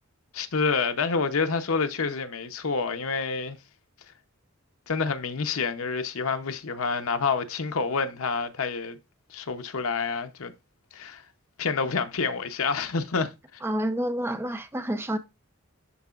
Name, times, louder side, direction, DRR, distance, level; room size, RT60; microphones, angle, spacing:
voice 1, 0.3-3.6 4.9-9.0 9.3-10.5 10.9-11.2 11.6-13.6, left 5 dB, 80° left, 0.7 m, -28 dB
voice 2, 13.6-15.2, right 1 dB, 10° right, 0.6 m, -28 dB
11.0 x 3.8 x 2.4 m
head